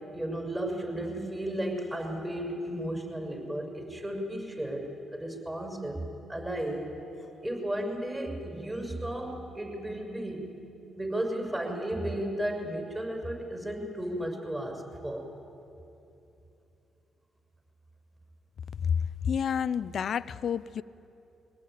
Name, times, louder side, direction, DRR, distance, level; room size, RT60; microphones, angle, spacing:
voice 1, 0.0-6.0 6.3-7.0 7.4-10.5 11.0-15.3, right 1 dB, 15° right, 2 dB, 6.5 m, -34 dB
voice 2, 18.8-20.8, left 7 dB, 60° left, 16 dB, 0.5 m, -29 dB
23.5 x 18.0 x 9.3 m, 2.8 s
supercardioid pair, 50°, 0 cm